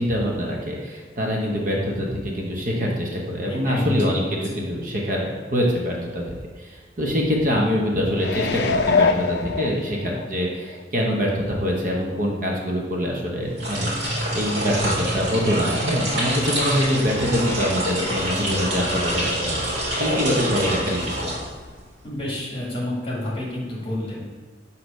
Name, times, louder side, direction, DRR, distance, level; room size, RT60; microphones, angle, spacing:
voice 1, 0.0-6.2 6.6-19.6 20.0-21.3, equal, 50° right, -1 dB, 0.9 m, -24 dB
voice 2, 3.5-4.1 4.5-4.6 22.0-24.2, left 1 dB, 30° left, -5 dB, 1.6 m, -29 dB
sound 1, 8.2-10.3 10.7-10.8, left 4 dB, 65° left, 0.4 m, -23 dB
sound 2, 13.5-21.9, equal, 75° right, 1.6 m, -26 dB
6.3 x 2.8 x 5.2 m, 1.5 s
head